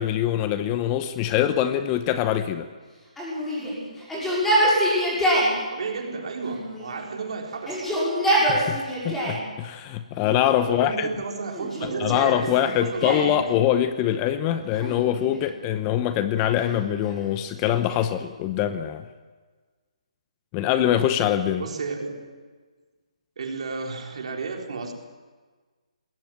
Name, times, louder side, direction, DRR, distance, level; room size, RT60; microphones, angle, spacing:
voice 1, 0.0-2.7 8.5-11.1 12.0-19.1 20.5-21.7, left 11 dB, 20° left, 11 dB, 0.9 m, -24 dB
Yell, 3.2-5.5 6.4-7.2 7.6-9.4 10.2-10.8 11.5-13.3 14.7-15.6 16.4-18.1, right 1 dB, 5° left, 6.6 m, -26 dB
voice 2, 5.7-7.9 10.6-13.6 21.6-22.4 23.4-24.9, right 4 dB, 55° right, 2 dB, 4.2 m, -32 dB
20.5 x 17.0 x 8.9 m, 1.4 s
hypercardioid pair, 155°, 4 cm